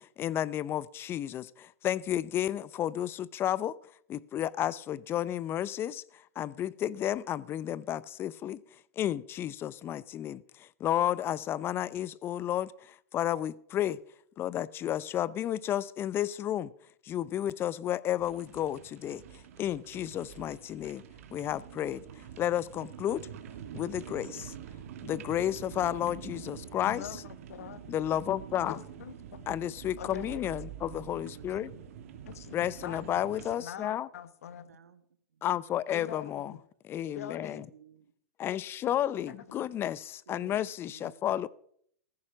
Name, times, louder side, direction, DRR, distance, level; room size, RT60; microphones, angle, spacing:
voice 1, 0.0-3.8 4.1-8.6 9.0-14.0 14.4-16.7 17.0-21.0 21.3-23.3 23.7-24.5 25.0-27.0 27.9-28.8 29.5-31.7 32.5-34.1 35.4-36.5 36.9-37.6 38.4-41.5, left 11 dB, 30° left, 0.6 m, -32 dB
sound 1, 18.2-33.6, right 9 dB, 65° right, 2.0 m, -46 dB
voice 2, 26.8-27.8 28.6-29.5 30.0-30.5 32.3-34.7 35.9-36.6 37.1-37.6 39.2-39.3 40.3-40.5, left 9 dB, 75° left, 1.2 m, -44 dB
voice 3, 27.8-28.2 30.1-30.4 31.0-31.9 32.9-33.9 34.6-35.0 35.3-35.8 37.5-38.1 39.3-39.6 40.3-40.6 40.8-41.5, right 7 dB, 85° right, 1.5 m, -59 dB
14.5 x 10.0 x 6.1 m
hypercardioid pair, 115°, 8 cm